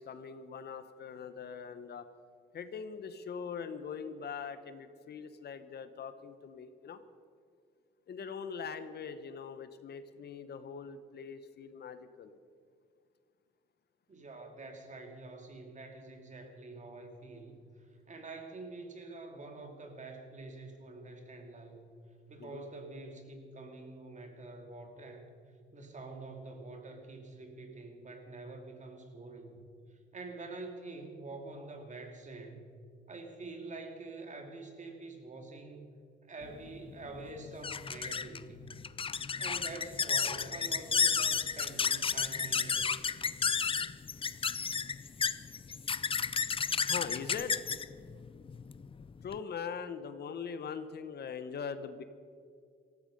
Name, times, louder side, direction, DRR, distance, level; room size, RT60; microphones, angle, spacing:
voice 1, 0.0-2.1 2.5-7.0 8.1-12.3 22.4-22.6 46.9-47.6 49.2-52.0, left 6 dB, 55° left, 11 dB, 1.0 m, -42 dB
voice 2, 14.1-17.6 18.1-21.9 22.3-25.3 25.7-29.7 30.1-32.7 33.1-35.9 36.3-38.8 39.4-43.1, right 3 dB, 40° right, 4 dB, 2.7 m, -46 dB
sound 1, 36.5-49.4, left 6 dB, 25° left, 0.5 m, -33 dB
18.5 x 14.5 x 5.3 m, 2.2 s
cardioid pair, 90°, 20 cm